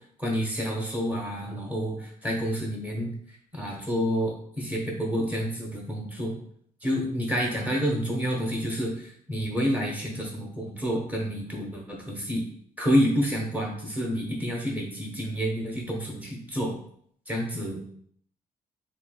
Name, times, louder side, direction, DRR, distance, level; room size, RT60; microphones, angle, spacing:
voice 1, 0.2-3.1 3.5-6.3 6.8-12.4 12.8-16.7 17.3-17.9, equal, 10° right, -1 dB, 0.9 m, -28 dB
3.3 x 2.8 x 2.2 m, 0.62 s
cardioid pair, 115°, 16 cm